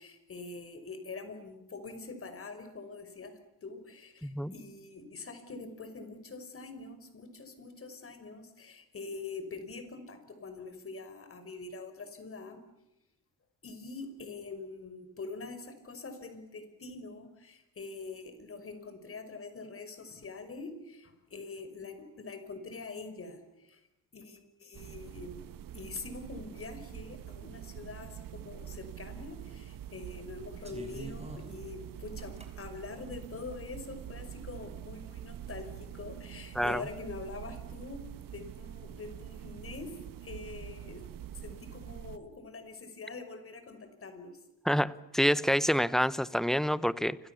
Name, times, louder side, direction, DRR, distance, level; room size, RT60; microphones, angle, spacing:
voice 1, 0.0-12.6 13.6-23.8 24.1-25.4 25.7-38.1 38.3-39.9 40.2-41.0 41.3-44.4, left 3 dB, 35° left, 9 dB, 5.8 m, -44 dB
voice 2, 4.2-4.5 36.5-36.8 44.7-47.2, equal, ahead, 16 dB, 0.9 m, -27 dB
sound 1, 24.7-42.2, right 10 dB, 60° right, 1.7 m, -45 dB
sound 2, 30.6-32.5 33.2-33.7, right 2 dB, 15° right, 6.1 m, -46 dB
29.5 x 27.0 x 7.2 m, 0.89 s
cardioid pair, 100°, 38 cm